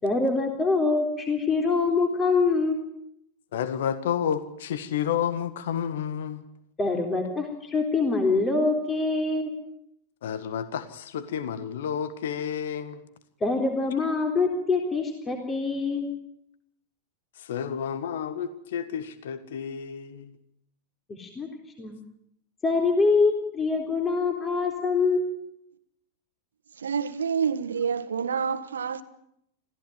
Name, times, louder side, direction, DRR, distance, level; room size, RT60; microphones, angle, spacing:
voice 1, 0.0-2.8 6.8-9.5 13.4-16.1 21.1-21.5 21.8-22.0 22.6-25.4, left 3 dB, 20° left, 3.8 m, -24 dB
voice 2, 3.5-6.4 10.2-13.0 17.5-20.3, left 8 dB, 60° left, 1.7 m, -30 dB
voice 3, 26.8-29.0, right 6 dB, 70° right, 1.6 m, -28 dB
26.5 x 16.0 x 9.3 m
figure-of-eight pair, 90°, 0 cm